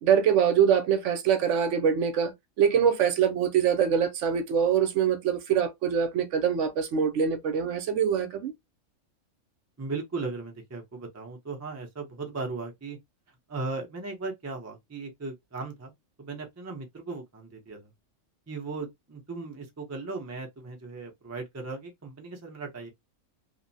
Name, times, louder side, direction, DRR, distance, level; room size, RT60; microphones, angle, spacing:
voice 1, 0.0-2.3 2.6-8.5, right 8 dB, 70° right, 0.9 m, -24 dB
voice 2, 9.8-13.0 13.5-15.9 16.2-17.9 18.5-22.9, right 3 dB, 25° right, 0.3 m, -37 dB
2.9 x 2.0 x 2.6 m
omnidirectional pair, 1.3 m